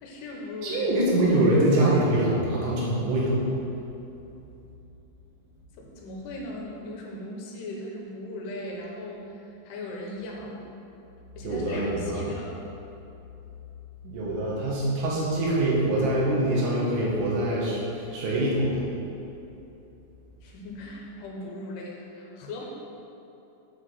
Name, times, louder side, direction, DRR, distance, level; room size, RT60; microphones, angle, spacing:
voice 1, 0.0-1.0 5.8-10.7 11.4-12.6 20.4-22.7, left 1 dB, 75° left, -2 dB, 3.4 m, -38 dB
voice 2, 0.6-3.4 11.4-12.2 14.0-18.8, right 1 dB, 80° right, -6 dB, 4.3 m, -24 dB
9.3 x 4.8 x 6.5 m, 2.9 s
omnidirectional pair, 5.9 m